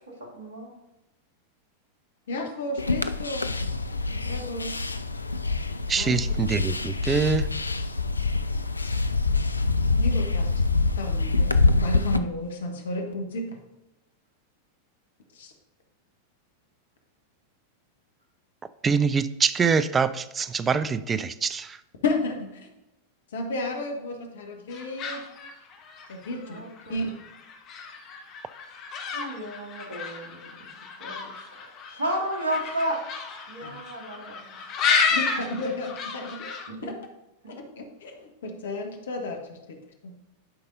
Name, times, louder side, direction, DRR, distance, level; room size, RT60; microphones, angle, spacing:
voice 1, 0.3-0.7 26.5-27.0 29.1-30.6 31.0-31.2 31.5-33.0 33.5-34.4 36.7-36.9, right 1 dB, 65° right, -1 dB, 2.0 m, -32 dB
voice 2, 2.3-3.5 4.1-4.7 6.0-6.2 8.6-9.0 9.9-10.5 10.7-13.5 15.3-15.5 22.0-22.7 23.3-25.2 26.1-26.6 26.9-27.1 33.6-33.7 35.1-36.5 37.5-39.8 40.0-40.1, left 2 dB, 60° left, 3 dB, 1.2 m, -33 dB
sound 1, 2.8-12.2, left 3 dB, 80° left, 0.4 m, -25 dB
voice 3, 5.9-7.5 18.8-21.8, right 5 dB, 20° right, 14 dB, 0.4 m, -24 dB
sound 2, 24.7-36.7, left 5 dB, 35° left, 1.1 m, -32 dB
11.5 x 5.3 x 2.6 m, 0.96 s
figure-of-eight pair, 90°, 0 cm